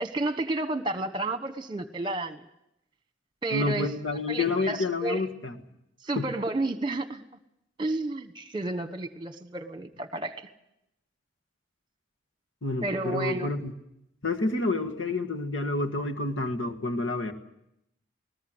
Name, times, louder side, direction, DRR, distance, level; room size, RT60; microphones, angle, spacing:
voice 1, 0.0-2.4 3.4-3.9 4.3-5.2 6.0-7.3 7.8-10.5 12.8-13.5, right 2 dB, 25° right, 10 dB, 1.2 m, -31 dB
voice 2, 3.5-5.6 6.1-6.3 12.6-13.7 14.2-17.3, left 2 dB, 90° left, 4 dB, 1.8 m, -29 dB
20.0 x 20.0 x 8.0 m, 0.83 s
head